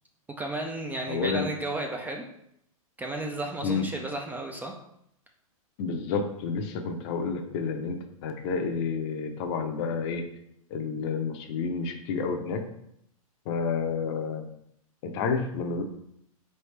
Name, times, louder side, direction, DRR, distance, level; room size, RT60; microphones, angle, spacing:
voice 1, 0.4-2.3 3.0-4.7, right 2 dB, 10° right, 1 dB, 0.3 m, -33 dB
voice 2, 1.1-1.5 3.6-3.9 5.8-10.3 10.7-12.6 13.5-14.5 15.0-15.8, left 5 dB, 45° left, 6 dB, 0.6 m, -30 dB
3.9 x 3.3 x 3.2 m, 0.74 s
hypercardioid pair, 120°, 18 cm